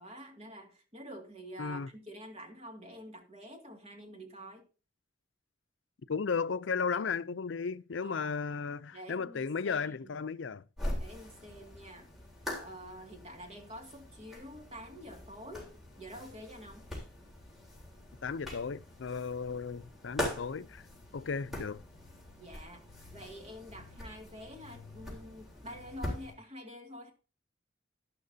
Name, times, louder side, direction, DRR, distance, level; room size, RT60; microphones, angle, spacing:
voice 1, 0.0-4.6 8.0-8.5 8.9-10.1 11.0-12.1 12.6-15.7 16.0-16.8 22.4-22.8 23.1-27.1, equal, 30° right, 2.2 m, -48 dB
voice 2, 1.6-1.9 6.1-10.6 18.2-20.8 21.1-21.8, left 5 dB, 75° left, 0.5 m, -35 dB
sound 1, 10.8-26.3, left 1 dB, ahead, 3.6 m, -43 dB
11.5 x 11.5 x 2.7 m
head